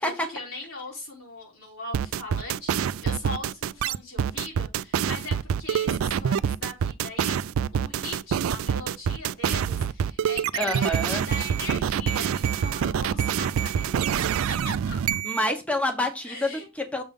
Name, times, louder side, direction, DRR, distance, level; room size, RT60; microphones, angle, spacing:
voice 1, 0.0-7.4 7.7-15.0 16.2-16.7, left 2 dB, 80° left, -2 dB, 3.3 m, -39 dB
sound 1, 1.9-15.5, right 8 dB, 80° right, 0.3 m, -26 dB
voice 2, 10.6-11.2 15.2-17.0, left 1 dB, 5° left, 5 dB, 1.0 m, -27 dB
7.2 x 3.5 x 5.3 m, 0.26 s
head